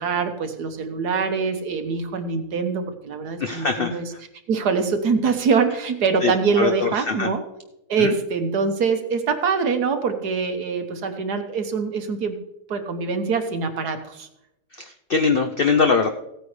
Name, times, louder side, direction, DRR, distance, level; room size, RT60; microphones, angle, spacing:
voice 1, 0.0-4.0 4.5-7.4 7.9-12.4 12.7-14.3, right 5 dB, 75° right, 6 dB, 1.6 m, -24 dB
voice 2, 3.4-4.2 6.2-7.3 8.0-8.1 14.7-16.1, left 5 dB, 65° left, 6 dB, 0.5 m, -22 dB
16.0 x 9.1 x 3.3 m, 0.85 s
omnidirectional pair, 1.7 m